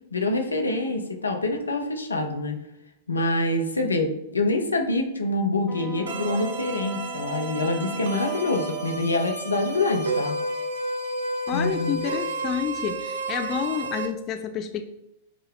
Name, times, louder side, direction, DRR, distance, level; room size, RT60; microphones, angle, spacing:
voice 1, 0.1-2.6 3.1-10.3 11.5-12.0, left 2 dB, 80° left, 2 dB, 0.6 m, -26 dB
Wind instrument woodwind instrument, 5.7-9.1, right 3 dB, 5° left, 0.7 m, -39 dB
sound 1, 6.1-14.1, right 2 dB, 65° right, 0.7 m, -31 dB
voice 2, 11.5-14.8, left 9 dB, 30° left, 7 dB, 0.3 m, -29 dB
5.9 x 2.1 x 3.7 m, 0.86 s
figure-of-eight pair, 100°, 0 cm